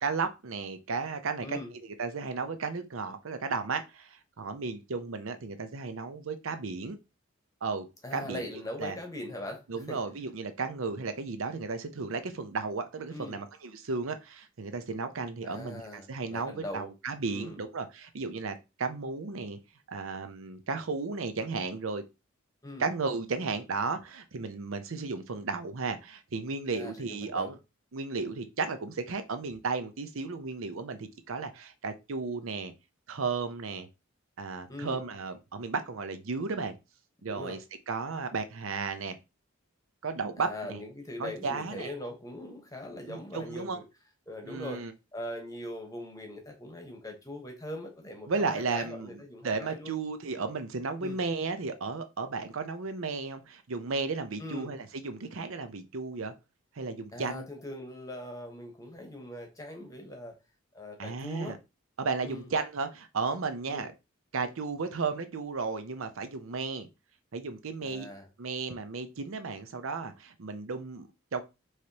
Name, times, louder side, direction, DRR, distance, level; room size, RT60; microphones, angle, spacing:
voice 1, 0.0-7.0 7.6-7.9 8.1-8.4 8.8-9.0 9.7-19.6 19.9-22.0 22.8-27.6 27.9-32.7 33.1-33.9 34.4-36.7 37.2-37.6 37.9-39.2 40.0-40.8 41.2-41.9 43.1-43.8 44.4-44.9 48.3-56.3 56.8-57.4 61.0-61.6 62.0-63.9 64.3-66.9 67.3-68.1 68.4-71.4, right 4 dB, 75° right, 0.6 m, -34 dB
voice 2, 1.4-1.7 8.0-10.0 13.1-13.4 15.4-16.9 17.2-17.6 22.6-22.9 26.7-27.5 34.7-35.0 37.3-37.6 40.4-43.8 44.3-44.8 45.1-49.9 51.0-51.2 54.4-54.7 57.1-60.3 60.7-61.5 62.2-62.5 63.7-63.9 67.8-68.3, left 1 dB, 15° left, 1.0 m, -41 dB
4.8 x 3.1 x 2.8 m
head